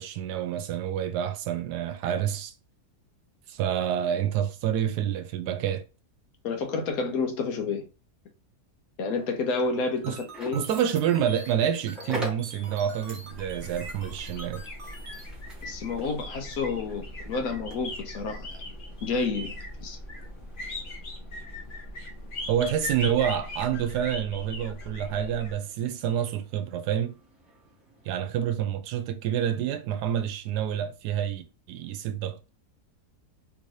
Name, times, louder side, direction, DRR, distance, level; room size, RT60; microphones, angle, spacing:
voice 1, 0.0-2.5 3.5-5.8 10.0-10.2 10.5-14.6 22.5-27.2 28.0-32.4, right 9 dB, 90° right, 1.2 m, -28 dB
voice 2, 6.4-7.9 9.0-10.6 15.6-18.5 19.0-20.0, left 4 dB, 70° left, 1.1 m, -30 dB
sound 1, 9.1-28.2, equal, ahead, 0.8 m, -46 dB
sound 2, 10.0-15.2, right 3 dB, 55° right, 1.3 m, -46 dB
sound 3, 13.3-25.6, left 1 dB, 40° left, 0.9 m, -39 dB
3.5 x 2.6 x 3.1 m
omnidirectional pair, 1.7 m